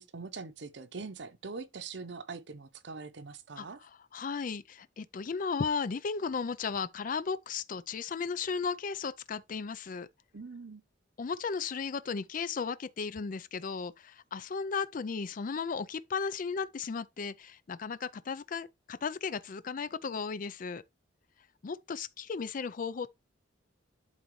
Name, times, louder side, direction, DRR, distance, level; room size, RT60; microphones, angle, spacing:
voice 1, 0.0-3.8 10.3-10.8, right 4 dB, 60° right, 0.8 m, -43 dB
voice 2, 4.1-10.1 11.2-20.8 21.6-23.1, left 5 dB, 45° left, 0.4 m, -35 dB
11.5 x 3.9 x 3.1 m
head